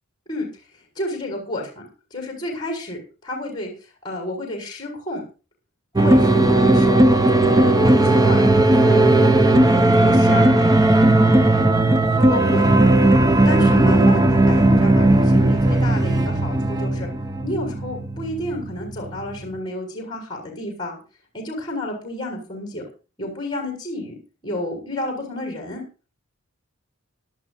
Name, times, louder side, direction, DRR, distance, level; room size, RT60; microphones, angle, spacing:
voice 1, 0.7-5.2 6.0-7.0 7.3-8.4 8.8-10.6 11.2-11.4 12.2-12.9 13.4-17.1 17.4-21.0 21.3-22.8 23.2-24.2 24.4-25.8, left 1 dB, 20° left, 0 dB, 6.4 m, -31 dB
sound 1, 6.0-19.6, right 1 dB, 15° right, 0.7 m, -16 dB
24.0 x 12.5 x 2.6 m, 0.35 s
head